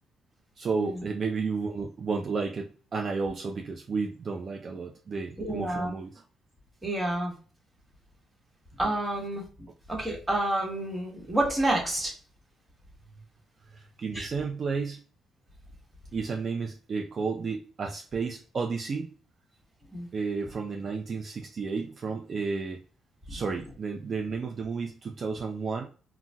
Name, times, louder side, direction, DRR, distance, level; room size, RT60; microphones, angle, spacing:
voice 1, 0.6-6.2 13.7-15.0 16.1-19.1 20.1-22.8 23.3-25.8, right 4 dB, 45° right, 3 dB, 0.4 m, -32 dB
voice 2, 5.4-5.9 6.8-7.3 8.8-9.4 9.9-12.1 14.1-14.3 19.9-20.1, right 1 dB, 15° right, 0 dB, 1.2 m, -29 dB
3.9 x 2.3 x 2.2 m, 0.38 s
cardioid pair, 90°, 0 cm